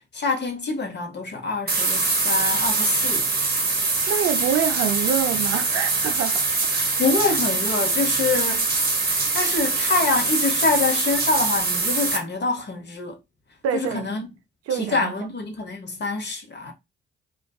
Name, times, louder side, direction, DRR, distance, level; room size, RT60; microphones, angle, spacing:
voice 1, 0.1-3.3 7.0-8.7 9.0-13.2 13.7-14.3 14.7-16.7, left 3 dB, 35° left, 0.9 m, -26 dB
sound 1, 1.7-12.2, right 3 dB, 30° right, 0.9 m, -23 dB
voice 2, 4.1-7.0 13.6-14.1 14.7-15.1, right 8 dB, 55° right, 0.4 m, -26 dB
2.5 x 2.3 x 2.3 m
hypercardioid pair, 40°, 30 cm